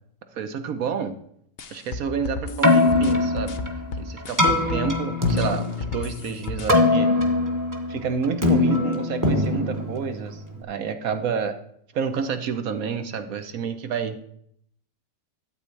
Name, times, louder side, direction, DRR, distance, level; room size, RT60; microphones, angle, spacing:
voice 1, 0.3-1.2 1.7-3.5 4.0-7.1 7.9-11.5 11.9-14.3, right 6 dB, 60° right, 8 dB, 1.1 m, -29 dB
sound 1, 1.6-4.9 5.3-6.7, left 3 dB, 70° left, 0.5 m, -34 dB
Keyboard (musical), 2.5-10.6, left 2 dB, 10° right, 1.1 m, -22 dB
12.5 x 4.2 x 8.3 m, 0.68 s
omnidirectional pair, 1.9 m